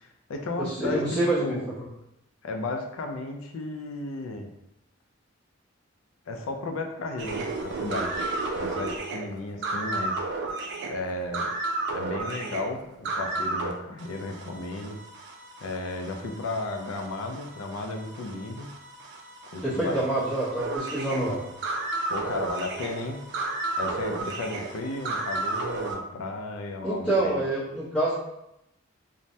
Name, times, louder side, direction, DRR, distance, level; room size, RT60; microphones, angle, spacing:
voice 1, 0.0-1.7 2.4-4.5 6.3-8.2 8.5-10.2 10.8-11.5 11.9-15.0 15.6-18.7 19.5-19.9 22.1-23.2 23.8-27.4, left 2 dB, 85° left, 3 dB, 0.4 m, -34 dB
voice 2, 0.6-1.6 19.6-21.4 26.8-28.1, right 1 dB, 5° left, -13 dB, 0.8 m, -26 dB
sound 1, 7.2-13.7 14.0-26.0, right 2 dB, 55° right, 0.4 m, -33 dB
3.2 x 2.1 x 2.7 m, 0.85 s
head